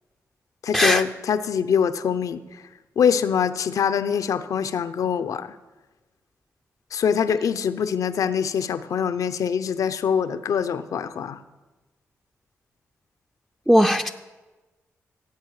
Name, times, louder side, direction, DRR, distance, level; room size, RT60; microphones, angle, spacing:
voice 1, 0.6-2.6 3.0-5.5 6.9-11.4, left 7 dB, 70° left, 12 dB, 0.6 m, -24 dB
voice 2, 13.7-14.1, equal, 5° right, 5 dB, 0.5 m, -17 dB
16.0 x 7.7 x 4.8 m, 1.2 s
cardioid pair, 55°, 6 cm